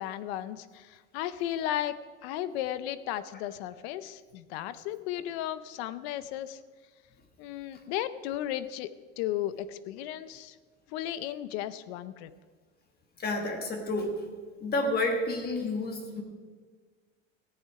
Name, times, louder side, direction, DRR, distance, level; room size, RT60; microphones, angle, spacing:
voice 1, 0.0-6.6 7.4-8.9 9.2-10.5 10.9-12.3, left 12 dB, 75° left, 15 dB, 0.7 m, -35 dB
voice 2, 13.2-14.2 14.6-16.2, left 2 dB, 30° left, 4 dB, 1.5 m, -30 dB
14.5 x 10.5 x 4.8 m, 1.5 s
supercardioid pair, 145°, 33 cm